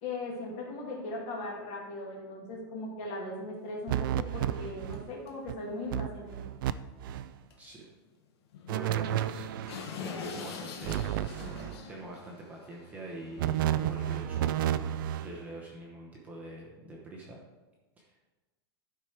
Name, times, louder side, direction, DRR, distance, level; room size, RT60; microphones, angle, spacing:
voice 1, 0.0-6.4, left 2 dB, 35° left, -2 dB, 2.2 m, -38 dB
sound 1, 3.6-3.7 4.1-4.2 4.9-5.0 5.3-5.4 5.6-5.8 7.5-7.6 7.9-8.0 8.5-13.9, left 6 dB, 80° left, 1.3 m, -44 dB
sound 2, 3.9-5.1 5.5-5.6 5.9-6.7 7.0-7.3 8.7-9.8 10.8-11.8 13.4-15.3, right 11 dB, 55° right, 0.4 m, -31 dB
voice 2, 7.6-7.9 8.7-9.5 10.0-11.2 11.9-14.9 15.2-17.4 18.0-18.2, right 1 dB, 10° right, -3 dB, 0.8 m, -44 dB
11.5 x 4.8 x 4.5 m, 1.1 s
supercardioid pair, 175°, 13 cm